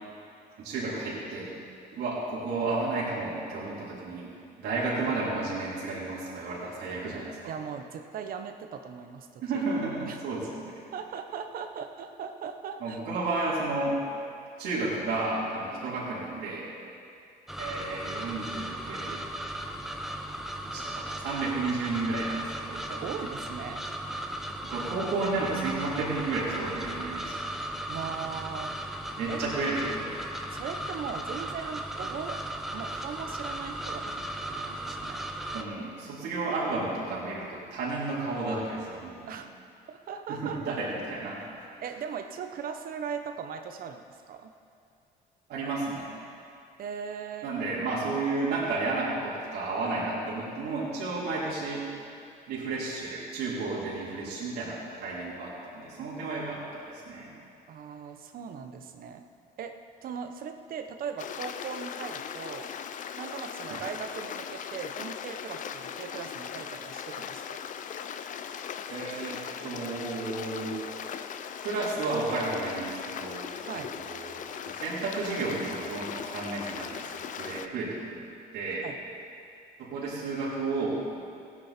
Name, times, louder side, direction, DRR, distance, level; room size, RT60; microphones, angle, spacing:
voice 1, 0.6-1.5 1.9-4.3 4.6-7.3 9.4-10.5 12.8-14.0 14.6-16.7 17.6-19.2 20.6-23.1 24.6-27.4 29.2-30.2 35.5-39.3 40.3-41.7 45.5-46.1 47.4-51.8 52.5-57.3 63.7-63.8 68.9-70.8 71.6-73.5 73.9-78.3 78.5-78.9 79.8-81.0, right 3 dB, 75° right, -7 dB, 3.8 m, -32 dB
voice 2, 7.5-9.4 10.0-10.2 10.9-13.0 15.8-15.9 22.9-23.9 27.9-28.8 29.3-29.4 30.5-32.4 32.7-35.2 39.3-39.5 39.9-40.8 41.8-44.5 46.8-47.5 57.7-59.2 59.6-59.7 60.0-62.7 63.2-67.6 73.6-73.9 78.8-79.0, right 7 dB, 60° right, 6 dB, 1.0 m, -39 dB
sound 1, 17.5-35.6, right 1 dB, ahead, 0.9 m, -36 dB
Stream, 61.2-77.7, left 8 dB, 50° left, 0.6 m, -39 dB
17.5 x 9.6 x 4.4 m, 2.4 s
cardioid pair, 110°, 17 cm